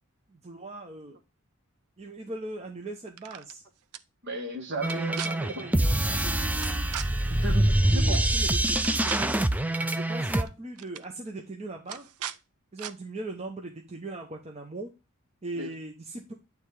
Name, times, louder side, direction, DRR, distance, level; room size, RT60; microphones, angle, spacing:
voice 1, 0.3-1.2 2.0-3.6 4.8-7.0 7.9-8.6 8.8-9.4 9.9-12.0 12.7-14.9 15.4-16.3, right 2 dB, 30° right, 0.8 m, -39 dB
sound 1, 3.1-3.5 3.9-4.0 4.8-5.3 6.6-7.1 8.1-8.3 8.6-9.4 10.4-10.5 10.8-11.1 11.9-12.4 12.8-12.9, right 10 dB, 85° right, 0.5 m, -38 dB
voice 2, 4.2-5.2 5.5-5.7 7.3-8.2 15.6-15.7, right 2 dB, 50° right, 1.4 m, -34 dB
sound 2, 4.8-10.4, right 1 dB, 5° right, 0.3 m, -25 dB
9.0 x 3.4 x 4.8 m
head